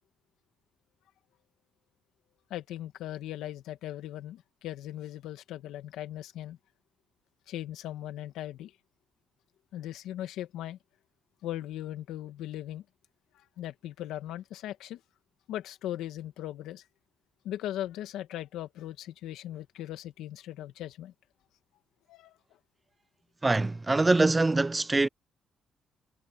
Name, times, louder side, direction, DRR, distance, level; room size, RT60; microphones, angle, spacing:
voice 1, 2.5-6.6 7.5-8.7 9.7-10.8 11.4-12.8 13.3-15.0 15.5-16.8 17.4-21.1 22.1-22.3, left 13 dB, 90° left, 1.9 m, -38 dB
voice 2, 23.4-25.1, right 2 dB, 20° right, 0.5 m, -24 dB
cardioid pair, 90°, 0 cm